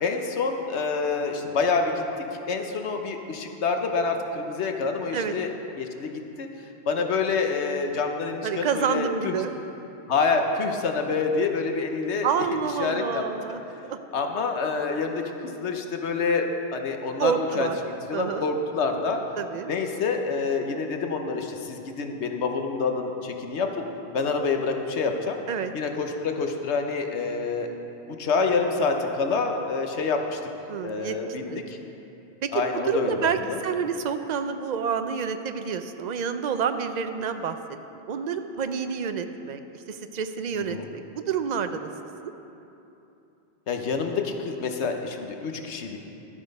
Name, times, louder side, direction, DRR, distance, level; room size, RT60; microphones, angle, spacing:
voice 1, 0.0-1.9 2.3-5.5 5.8-6.1 6.4-6.5 6.9-9.3 10.1-12.3 12.8-13.6 14.1-16.5 16.7-17.7 18.1-19.2 19.6-23.9 24.1-25.4 25.7-27.7 28.1-30.4 30.8-31.8 32.5-33.6 40.6-40.9 43.7-46.0, left 4 dB, 90° left, 4 dB, 1.2 m, -27 dB
voice 2, 8.4-9.5 12.2-13.6 13.9-14.0 17.2-17.8 18.1-18.5 19.4-19.7 25.5-25.7 30.7-31.2 31.4-31.6 32.4-37.6 38.1-39.6 39.9-41.9 42.2-42.3, right 7 dB, 50° right, 8 dB, 0.6 m, -28 dB
12.5 x 8.7 x 5.4 m, 2.9 s
omnidirectional pair, 1.1 m